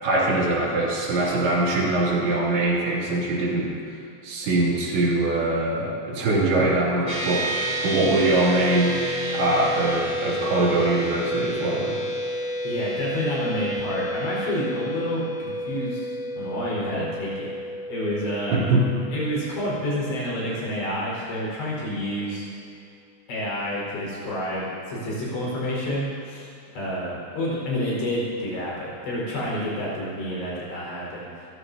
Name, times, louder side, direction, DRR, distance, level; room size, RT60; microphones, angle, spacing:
voice 1, 0.0-3.7 4.2-9.0 9.3-12.0 18.5-18.9, right 2 dB, 75° right, -5 dB, 5.1 m, -23 dB
sound 1, 7.1-20.7, equal, 20° left, 3.3 m, -30 dB
voice 2, 12.6-17.5 17.9-18.7 19.1-22.5 23.3-31.5, equal, 70° left, -5 dB, 7.1 m, -29 dB
27.5 x 14.5 x 2.8 m, 2.4 s
omnidirectional pair, 5.3 m